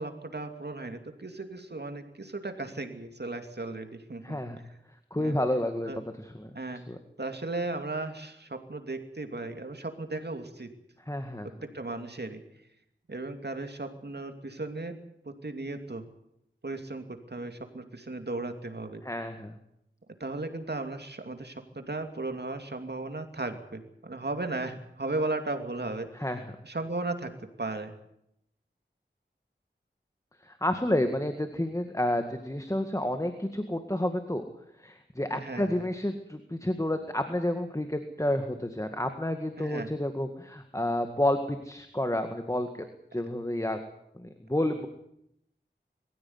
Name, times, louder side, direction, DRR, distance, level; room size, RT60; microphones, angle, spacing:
voice 1, 0.0-4.4 5.2-5.4 5.9-6.0 6.5-6.8 7.2-10.7 11.6-12.4 13.1-15.0 15.2-16.1 16.6-19.0 20.2-26.1 26.6-27.3 27.6-27.9 35.3-35.8 39.6-39.9 43.1-43.2, right 2 dB, 60° right, 6 dB, 2.7 m, -36 dB
voice 2, 4.2-4.6 5.1-5.9 6.2-6.5 6.9-7.0 11.1-11.5 19.0-19.5 26.1-26.5 30.4-34.5 34.8-42.9 43.1-43.8 44.1-44.9, left 1 dB, 15° left, 7 dB, 1.9 m, -30 dB
22.0 x 15.5 x 9.7 m, 0.79 s
wide cardioid pair, 50°, 19 cm